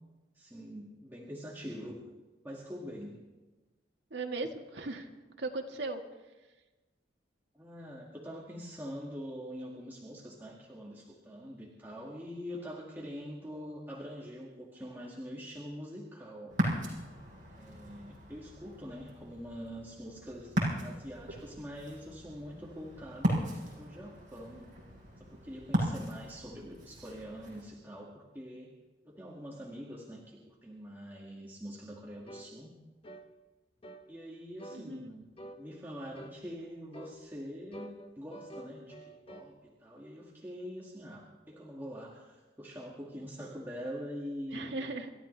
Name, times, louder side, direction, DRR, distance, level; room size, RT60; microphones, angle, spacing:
voice 1, 0.3-2.1 2.4-3.2 7.5-16.5 17.5-20.5 20.8-23.5 23.8-24.7 25.2-28.7 29.0-32.7 34.1-35.2 35.6-44.8, equal, 10° right, -5 dB, 2.1 m, -44 dB
voice 2, 4.1-5.1 5.4-6.0 34.7-35.1 44.5-45.1, right 3 dB, 75° right, 3 dB, 1.6 m, -37 dB
Ocean, 16.5-27.6, equal, 45° right, 6.1 m, -37 dB
sound 1, 32.3-32.5 33.0-33.3 33.8-34.1 34.6-34.8 35.4-35.6 36.2-36.4 36.9-37.2 37.7-39.5, right 1 dB, 35° left, 1.0 m, -48 dB
27.5 x 13.5 x 3.3 m, 1.2 s
head